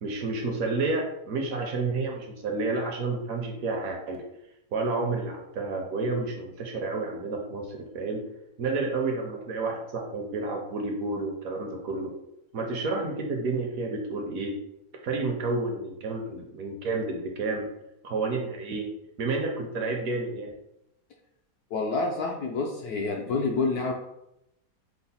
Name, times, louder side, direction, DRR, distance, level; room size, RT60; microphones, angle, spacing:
voice 1, 0.0-4.2 4.7-8.2 8.6-12.1 12.5-14.5 15.0-17.6 18.0-18.9 19.2-20.5, right 3 dB, 65° right, 2 dB, 0.9 m, -30 dB
voice 2, 21.7-23.9, left 3 dB, 70° left, 2 dB, 0.9 m, -28 dB
5.7 x 2.0 x 4.1 m, 0.84 s
omnidirectional pair, 1.9 m